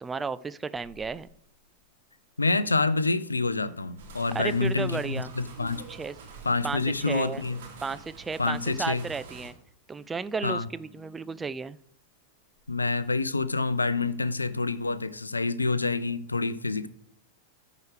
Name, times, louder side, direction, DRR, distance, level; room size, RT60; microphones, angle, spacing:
voice 1, 0.0-1.3 4.3-5.3 5.9-6.1 6.6-6.8 7.1-7.4 7.8-9.5 9.9-11.8, right 4 dB, 15° right, 0.4 m, -33 dB
Telephone, 0.7-15.1, left 8 dB, ahead, 2.7 m, -59 dB
voice 2, 2.4-5.8 6.4-7.6 8.4-9.0 10.4-10.7 12.7-16.9, left 3 dB, 85° left, 0.5 m, -27 dB
sound 1, 4.0-9.5, right 5 dB, 60° right, 2.9 m, -46 dB
13.5 x 4.9 x 4.9 m
figure-of-eight pair, 95°, 0 cm